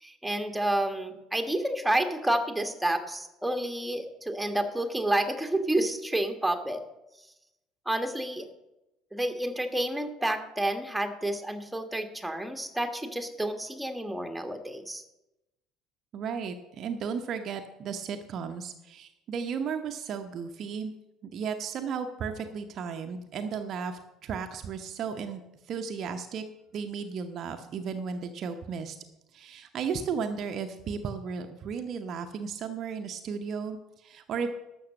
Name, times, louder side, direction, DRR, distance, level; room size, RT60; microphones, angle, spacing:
voice 1, 0.0-6.8 7.8-8.5 9.1-15.0, right 1 dB, 5° right, 6 dB, 1.5 m, -29 dB
voice 2, 16.1-20.9 21.2-25.4 25.7-26.4 26.7-29.0 29.3-34.5, right 6 dB, 45° right, 6 dB, 0.9 m, -34 dB
12.5 x 6.4 x 7.4 m, 0.93 s
figure-of-eight pair, 60°, 0 cm